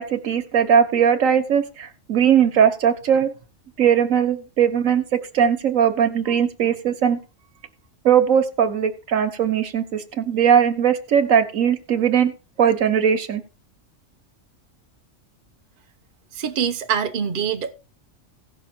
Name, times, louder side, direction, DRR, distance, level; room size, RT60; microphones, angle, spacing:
voice 1, 0.0-3.3 3.8-5.0 5.3-7.2 8.0-12.3 12.6-13.4, right 8 dB, 85° right, 1.5 m, -19 dB
voice 2, 16.3-17.7, right 7 dB, 45° right, 1.0 m, -24 dB
16.5 x 6.1 x 4.4 m
omnidirectional pair, 1.3 m